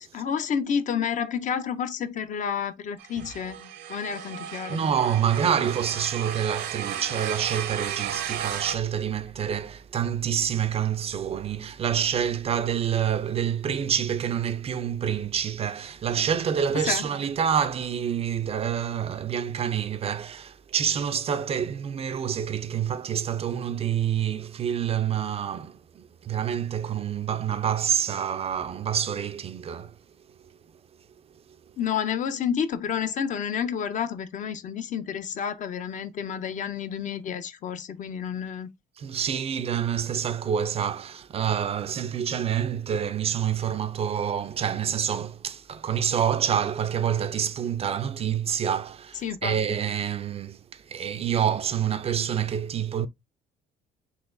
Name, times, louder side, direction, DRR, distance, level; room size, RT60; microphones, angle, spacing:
voice 1, 0.1-4.8 16.8-17.0 31.8-38.7 49.2-49.8, left 7 dB, 50° left, 0.5 m, -30 dB
sound 1, 3.0-8.8, right 10 dB, 70° right, 0.7 m, -34 dB
voice 2, 4.7-29.9 39.0-53.1, right 8 dB, 35° right, 0.4 m, -27 dB
3.9 x 3.0 x 2.5 m
cardioid pair, 110°, 17 cm